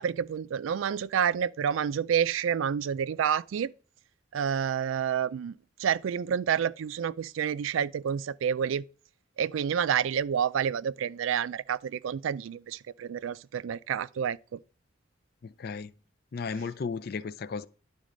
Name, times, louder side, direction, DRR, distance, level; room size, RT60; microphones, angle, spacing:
voice 1, 0.0-3.7 4.3-8.8 9.4-14.6, right 8 dB, 85° right, 0.3 m, -29 dB
voice 2, 15.4-15.9 16.3-17.7, left 5 dB, 50° left, 0.4 m, -34 dB
10.5 x 4.1 x 5.0 m
head